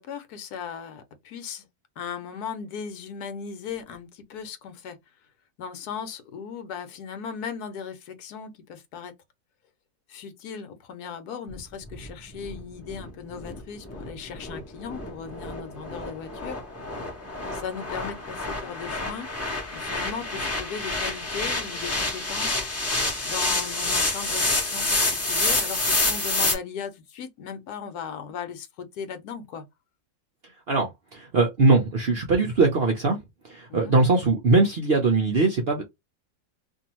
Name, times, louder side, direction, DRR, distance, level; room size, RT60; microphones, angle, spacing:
voice 1, 0.0-1.7 2.0-5.0 5.6-9.1 10.1-16.6 16.8-17.0 17.5-19.4 19.7-22.6 23.2-29.7 33.7-33.9, left 7 dB, 70° left, 1.2 m, -37 dB
sound 1, 11.5-26.6, left 2 dB, 15° left, 0.6 m, -28 dB
voice 2, 30.7-33.2 33.4-35.8, right 3 dB, 55° right, 0.7 m, -21 dB
2.7 x 2.6 x 2.9 m
omnidirectional pair, 1.8 m